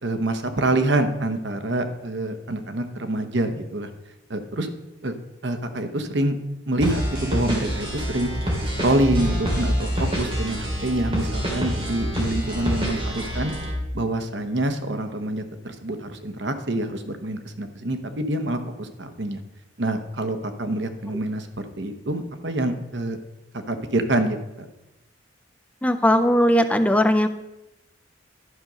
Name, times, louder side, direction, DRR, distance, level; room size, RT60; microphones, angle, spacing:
voice 1, 0.0-3.9 4.3-4.7 5.0-5.1 5.4-6.4 6.7-8.3 8.8-13.5 13.9-19.4 19.8-23.2 23.7-24.4, right 1 dB, 60° right, 8 dB, 1.0 m, -26 dB
sound 1, 6.8-13.7, equal, 30° right, 2.6 m, -26 dB
voice 2, 25.8-27.3, equal, 5° left, 9 dB, 0.4 m, -18 dB
11.5 x 5.2 x 6.2 m, 0.93 s
head